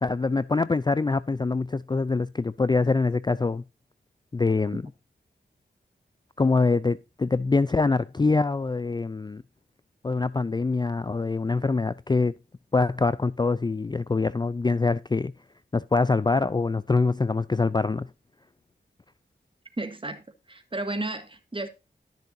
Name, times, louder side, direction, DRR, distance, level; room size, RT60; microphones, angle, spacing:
voice 1, 0.0-3.6 4.3-4.8 6.4-9.4 10.0-12.3 12.7-15.3 15.7-18.1, left 3 dB, 20° left, 0.4 m, -24 dB
voice 2, 19.8-20.2 20.5-21.7, right 2 dB, 25° right, 1.9 m, -32 dB
13.0 x 6.6 x 2.6 m
cardioid pair, 50°, 19 cm